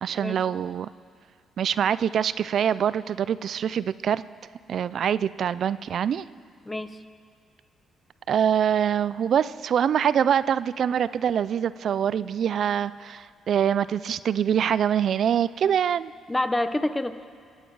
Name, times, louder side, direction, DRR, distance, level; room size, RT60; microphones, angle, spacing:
voice 1, 0.0-0.9 1.6-4.2 4.7-6.3 8.3-16.1, right 8 dB, 60° right, 16 dB, 0.3 m, -24 dB
voice 2, 6.7-7.0 16.3-17.3, left 1 dB, 15° left, 11 dB, 0.8 m, -27 dB
23.5 x 9.1 x 4.7 m, 2.2 s
cardioid pair, 90°, 0 cm